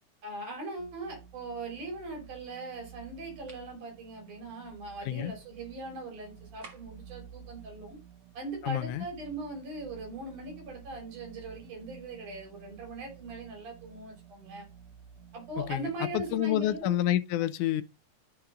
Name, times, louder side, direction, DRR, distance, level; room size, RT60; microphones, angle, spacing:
voice 1, 0.2-8.0 8.3-14.7 15.3-16.9, right 2 dB, 85° right, 4.9 m, -40 dB
sound 1, 0.8-16.8, right 8 dB, 60° right, 1.6 m, -53 dB
sound 2, 3.5-3.7 6.6-7.1, right 3 dB, 30° right, 1.4 m, -51 dB
voice 2, 5.0-5.3 8.6-9.1 15.7-17.8, left 12 dB, 85° left, 2.2 m, -29 dB
13.5 x 4.5 x 3.7 m
omnidirectional pair, 3.5 m